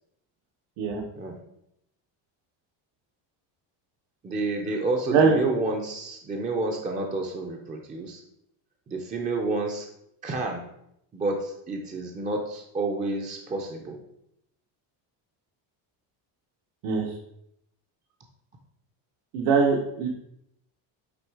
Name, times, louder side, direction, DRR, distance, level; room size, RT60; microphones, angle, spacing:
voice 1, 4.2-8.2 8.9-9.9 10.2-10.6 11.1-14.0, right 2 dB, 20° right, 1 dB, 0.4 m, -29 dB
voice 2, 16.8-17.1 19.3-20.1, right 5 dB, 85° right, 0 dB, 1.2 m, -22 dB
8.3 x 3.2 x 4.7 m, 0.78 s
cardioid pair, 180°, 49 cm